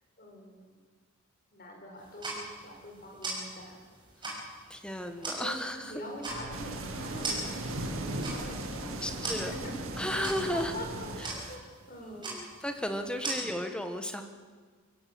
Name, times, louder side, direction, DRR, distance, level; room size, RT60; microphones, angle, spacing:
voice 1, 0.2-0.8 1.5-3.8 4.2-4.3 5.4-9.8 10.0-10.1 10.5-12.4 13.2-13.3, equal, 40° left, 1 dB, 5.5 m, -44 dB
sound 1, 2.0-13.3, right 2 dB, 20° right, 5.9 m, -41 dB
voice 2, 4.2-5.9 9.0-9.5 10.0-10.7 12.0-14.2, equal, 5° left, 6 dB, 1.5 m, -34 dB
sound 2, 6.3-11.3, right 1 dB, 55° right, 3.7 m, -40 dB
sound 3, 6.5-11.6, right 2 dB, 75° right, 2.1 m, -41 dB
24.0 x 16.0 x 7.8 m, 1.5 s
head